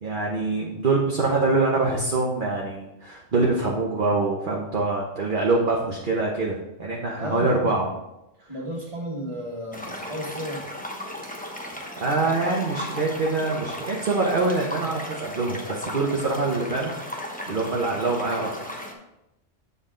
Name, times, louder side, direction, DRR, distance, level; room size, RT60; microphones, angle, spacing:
voice 1, 0.0-7.9 8.5-8.6 11.8-16.9 17.2-18.5, right 3 dB, 45° right, -2 dB, 1.1 m, -25 dB
voice 2, 7.2-7.7 8.5-10.7, equal, 25° right, -4 dB, 2.1 m, -33 dB
sound 1, 9.7-18.9, equal, 10° left, 0.9 m, -36 dB
7.8 x 6.9 x 3.8 m, 0.90 s
omnidirectional pair, 1.3 m